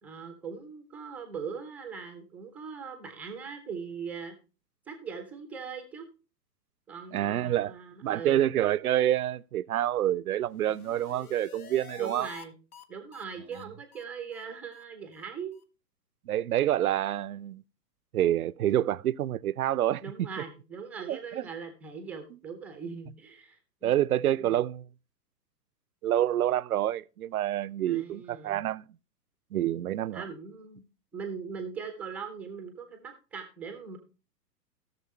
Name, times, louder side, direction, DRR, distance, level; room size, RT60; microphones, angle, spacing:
voice 1, 0.0-4.3 4.9-6.1 6.9-8.5 12.0-12.5 12.9-15.5 20.0-23.9 24.3-24.6 27.8-28.6 30.1-30.8 31.1-34.0, right 6 dB, 5° right, 0.5 m, -40 dB
voice 2, 7.1-7.7 8.0-12.3 16.3-17.6 18.1-20.3 21.1-21.4 23.8-24.9 26.0-28.9 29.5-30.3, right 12 dB, 60° right, 0.5 m, -27 dB
sound 1, 10.4-12.5 12.7-12.8 13.1-13.2 13.5-13.6 13.9-14.0 14.3-14.4 14.7-14.8 15.1-15.2 15.5-15.6, left 7 dB, 60° left, 1.1 m, -48 dB
16.5 x 6.6 x 3.2 m
figure-of-eight pair, 115°, 50 cm